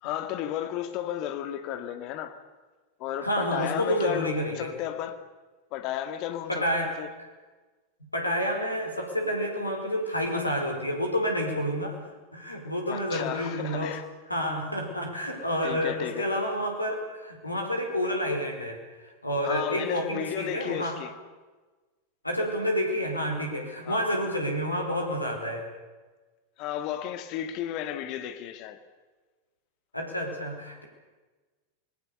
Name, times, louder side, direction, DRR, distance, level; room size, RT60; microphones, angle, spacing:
voice 1, 0.0-2.4 3.0-5.2 5.7-7.1 12.9-14.1 15.6-16.3 19.4-21.1 23.9-24.1 26.6-28.8, left 11 dB, 40° left, 2.0 m, -33 dB
voice 2, 3.2-4.7 6.5-7.3 8.1-12.0 12.3-14.0 14.3-18.8 19.2-21.0 22.2-25.7 29.9-30.8, equal, 85° left, 4.7 m, -29 dB
27.0 x 20.5 x 6.8 m
figure-of-eight pair, 90°, 0 cm